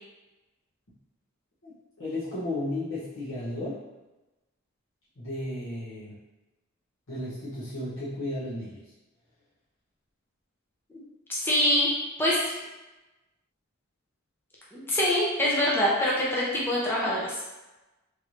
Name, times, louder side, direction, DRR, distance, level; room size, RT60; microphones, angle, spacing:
voice 1, 1.6-3.8 5.2-6.2 7.1-8.8, left 1 dB, 65° left, -12 dB, 0.9 m, -34 dB
voice 2, 11.3-11.9 12.2-12.4 14.7-17.3, left 1 dB, 10° left, -6 dB, 0.6 m, -24 dB
3.2 x 2.6 x 3.1 m, 1.1 s
head